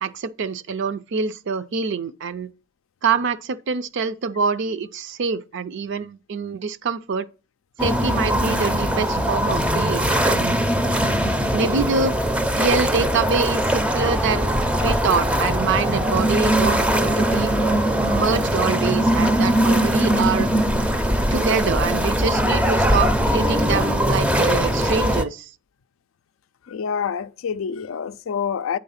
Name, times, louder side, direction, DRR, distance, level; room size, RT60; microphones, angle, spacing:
voice 1, 0.0-2.5 3.0-7.3 7.8-10.6 11.5-12.2 12.5-17.5 17.9-20.5 21.3-25.5, right 5 dB, 60° right, 0.5 m, -25 dB
sound 1, 7.8-25.2, equal, 5° right, 0.5 m, -21 dB
sound 2, 12.8-17.8, right 3 dB, 85° right, 1.0 m, -41 dB
voice 2, 26.7-28.8, left 7 dB, 70° left, 0.4 m, -27 dB
8.7 x 3.8 x 5.6 m
head